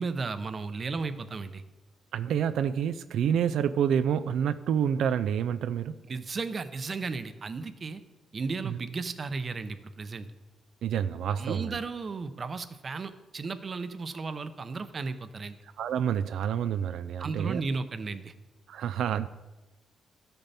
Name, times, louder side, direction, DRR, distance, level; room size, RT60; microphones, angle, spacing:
voice 1, 0.0-1.6 6.1-8.0 8.3-10.3 11.3-15.6 17.2-18.3, right 4 dB, 40° right, 11 dB, 0.7 m, -34 dB
voice 2, 2.1-6.0 8.6-8.8 10.8-11.8 15.6-17.6 18.7-19.3, right 8 dB, 85° right, 13 dB, 0.3 m, -28 dB
13.0 x 6.8 x 4.1 m, 1.1 s
cardioid pair, 120°, 0 cm